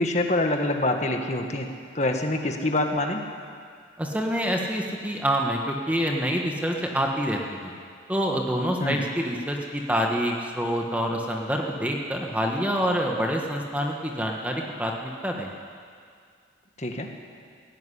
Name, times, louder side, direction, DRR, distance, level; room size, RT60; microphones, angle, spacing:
voice 1, 0.0-1.7 1.9-3.2 8.8-9.0 16.8-17.1, left 2 dB, 35° left, 4 dB, 1.7 m, -25 dB
voice 2, 4.0-7.7 8.1-15.5, equal, 10° right, 1 dB, 1.4 m, -27 dB
17.0 x 16.5 x 9.9 m, 2.2 s
head